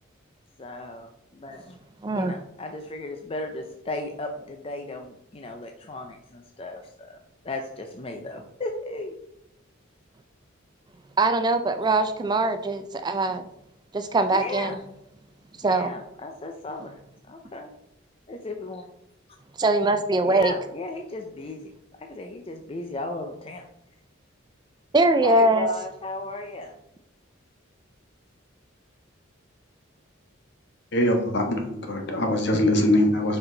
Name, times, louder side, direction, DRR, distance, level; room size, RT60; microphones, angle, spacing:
voice 1, 0.6-1.8 2.1-7.2 7.4-9.1 14.3-14.8 15.7-17.0 17.3-17.7 18.3-18.9 20.2-21.7 22.0-23.6 25.2-26.7, left 2 dB, 30° left, 3 dB, 0.6 m, -35 dB
voice 2, 2.0-2.3 11.2-13.4 13.9-14.8 15.6-15.9 19.6-20.5 24.9-25.7, right 2 dB, 20° right, 9 dB, 0.4 m, -22 dB
voice 3, 30.9-33.4, left 1 dB, 60° left, 3 dB, 1.4 m, -22 dB
6.9 x 5.5 x 3.9 m, 0.81 s
head